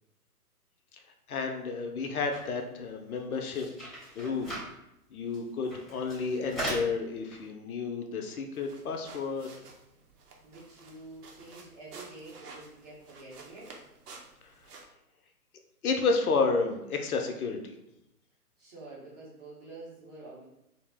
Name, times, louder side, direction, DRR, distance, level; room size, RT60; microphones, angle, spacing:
voice 1, 1.3-4.5 5.1-9.5 15.8-17.7, left 4 dB, 65° left, 3 dB, 0.6 m, -31 dB
sound 1, 2.3-2.5 2.8-2.9 3.2-4.7 5.3-5.4 5.6-6.9 7.3-7.4, right 1 dB, ahead, 0.3 m, -38 dB
sound 2, 8.5-14.8, right 4 dB, 75° right, 0.7 m, -52 dB
voice 2, 10.4-13.7 18.6-20.5, right 2 dB, 25° right, -6 dB, 0.6 m, -48 dB
2.5 x 2.0 x 3.3 m, 0.86 s
hypercardioid pair, 140°, 47 cm